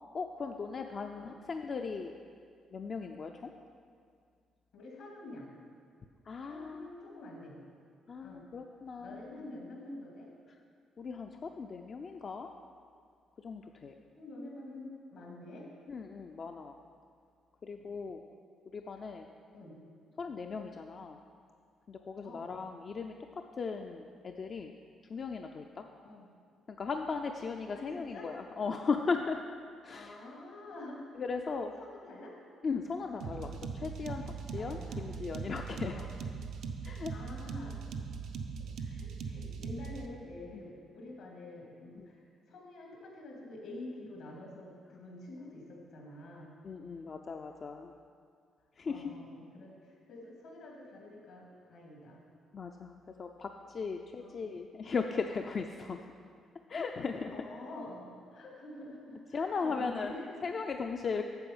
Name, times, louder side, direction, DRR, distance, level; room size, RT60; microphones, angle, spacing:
voice 1, 0.1-2.1 2.7-3.5 6.3-6.9 8.1-9.3 11.0-12.5 13.4-13.9 15.9-16.7 17.6-18.2 18.7-19.3 20.2-21.2 21.9-23.1 23.6-24.7 25.1-25.8 26.7-29.4 29.8-30.1 31.2-31.7 32.6-34.2 34.5-35.9 36.8-37.1 40.5-40.6 42.0-42.1 46.6-47.9 48.8-49.1 52.5-56.0 56.7-57.3 59.3-60.1 60.4-61.2, left 5 dB, 45° left, 4 dB, 0.4 m, -37 dB
voice 2, 0.8-1.3 4.7-5.5 6.5-7.6 8.2-8.4 9.0-10.3 14.1-15.7 17.7-17.8 19.5-19.8 22.2-22.5 26.0-26.3 27.7-28.3 29.9-31.3 31.8-32.3 34.6-35.1 35.9-36.1 37.1-37.8 38.8-46.5 48.8-52.2 54.2-54.5 57.3-60.3, left 2 dB, 80° left, -2 dB, 2.4 m, -47 dB
sound 1, 33.2-40.1, right 5 dB, 75° right, 0.6 m, -40 dB
8.9 x 6.9 x 5.4 m, 2.2 s
cardioid pair, 90°, 0 cm